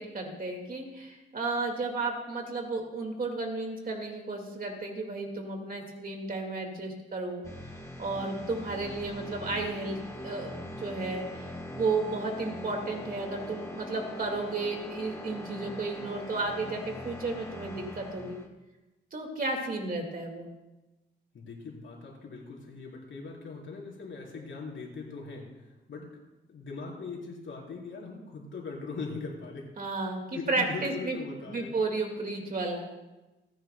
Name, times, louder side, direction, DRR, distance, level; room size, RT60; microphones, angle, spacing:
voice 1, 0.0-7.4 8.0-10.0 10.2-18.4 19.1-20.5 29.8-31.2 31.5-32.9, right 3 dB, 45° right, 2 dB, 2.0 m, -33 dB
sound 1, 7.4-18.5, left 1 dB, 15° left, 1.2 m, -42 dB
voice 2, 21.3-26.1 26.5-29.7 30.3-31.8, left 4 dB, 75° left, -3 dB, 4.1 m, -40 dB
28.5 x 9.9 x 2.3 m, 1.1 s
wide cardioid pair, 180°, 20 cm